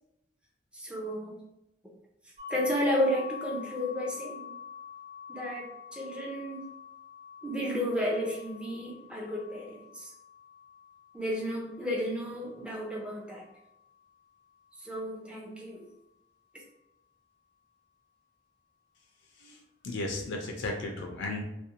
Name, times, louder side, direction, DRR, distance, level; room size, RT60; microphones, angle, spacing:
voice 1, 0.7-1.4 2.5-4.5 5.3-6.7 7.4-10.1 11.1-13.4 14.8-15.9, equal, 5° right, -3 dB, 0.5 m, -32 dB
sound 1, 2.4-14.1, left 7 dB, 50° right, 1.2 m, -47 dB
voice 2, 19.8-21.4, left 2 dB, 75° left, 0 dB, 0.4 m, -34 dB
2.5 x 2.1 x 2.7 m, 0.87 s
head